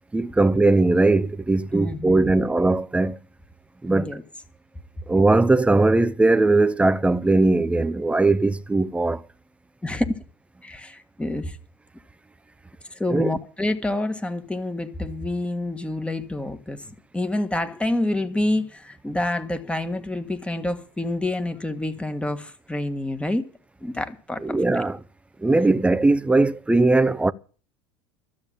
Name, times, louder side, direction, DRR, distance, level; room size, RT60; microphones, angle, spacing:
voice 1, 0.1-3.1 3.8-4.1 5.1-9.2 13.1-13.3 24.4-25.0 25.4-27.3, right 2 dB, 10° right, 0.6 m, -19 dB
voice 2, 1.7-2.5 3.9-4.2 9.8-10.2 10.6-11.6 12.9-23.4 23.8-24.8, left 1 dB, 10° left, 1.6 m, -28 dB
13.0 x 7.2 x 8.7 m
hypercardioid pair, 90°, 14 cm